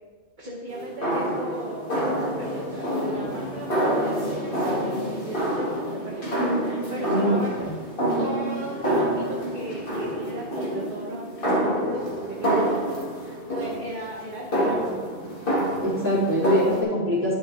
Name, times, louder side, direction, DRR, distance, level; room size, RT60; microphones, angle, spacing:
voice 1, 0.4-6.3 6.6-7.7 8.2-15.0, right 1 dB, 45° right, -3 dB, 1.3 m, -36 dB
sound 1, 0.7-16.8, equal, 50° left, 2.3 m, -27 dB
voice 2, 7.0-7.4 15.8-17.3, equal, 10° right, -7 dB, 3.1 m, -24 dB
10.5 x 5.7 x 4.7 m, 1.3 s
omnidirectional pair, 1.2 m